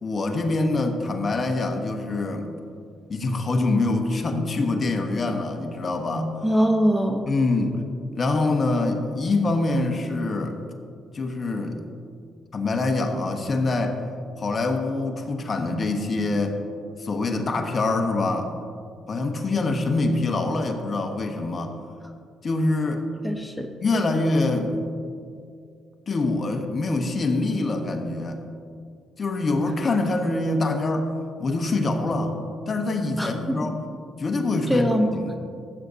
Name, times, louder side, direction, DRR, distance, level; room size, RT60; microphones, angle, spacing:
voice 1, 0.0-2.5 3.1-6.3 7.3-7.8 8.1-10.6 11.1-11.8 12.5-14.0 14.4-16.6 17.0-18.5 19.1-21.8 22.4-23.0 23.8-24.8 26.1-28.4 29.2-31.1 31.4-32.4 32.7-33.8 34.2-34.9 35.2-35.4, left 2 dB, 40° left, 4 dB, 1.1 m, -25 dB
voice 2, 6.4-7.2 23.2-23.7 33.2-33.6 34.7-35.3, equal, ahead, 3 dB, 0.8 m, -22 dB
15.0 x 8.0 x 2.8 m, 2.3 s
cardioid pair, 90°, 0 cm